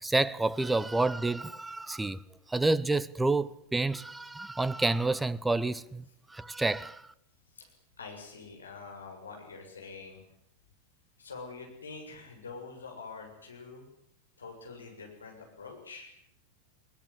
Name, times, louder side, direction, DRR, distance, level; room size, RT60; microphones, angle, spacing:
voice 1, 0.0-2.2 2.5-7.0, right 2 dB, 10° right, 0.9 m, -29 dB
voice 2, 8.0-10.2 11.2-13.9 14.4-16.1, left 4 dB, 75° left, 7.1 m, -45 dB
21.0 x 19.5 x 9.9 m
figure-of-eight pair, 90°, 0 cm